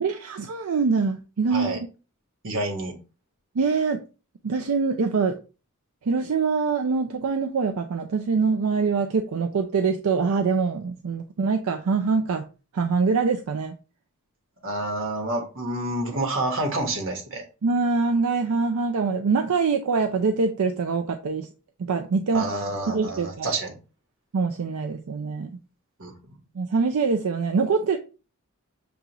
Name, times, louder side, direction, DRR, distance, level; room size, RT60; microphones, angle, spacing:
voice 1, 0.0-1.8 3.6-4.0 4.4-5.4 6.0-12.4 12.7-13.7 17.6-21.5 21.8-22.5 22.9-23.5 24.3-25.5 26.6-28.0, right 4 dB, 85° right, 0.4 m, -24 dB
voice 2, 2.4-2.9 14.6-17.4 22.3-23.7 26.0-26.1, right 2 dB, 65° right, 1.3 m, -28 dB
6.9 x 2.4 x 2.9 m
head